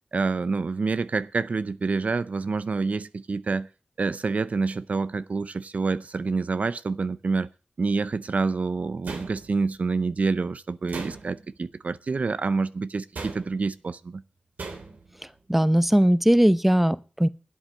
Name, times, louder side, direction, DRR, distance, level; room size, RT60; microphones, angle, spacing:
voice 1, 0.1-3.7 4.0-7.5 7.8-14.2, right 4 dB, 60° right, 0.6 m, -27 dB
sound 1, 9.0-9.8 10.9-11.6 13.1-13.7 14.6-15.1, right 4 dB, 90° right, 2.9 m, -38 dB
voice 2, 15.5-17.3, equal, 5° right, 0.7 m, -19 dB
12.0 x 8.1 x 7.1 m
cardioid pair, 55°, 3 cm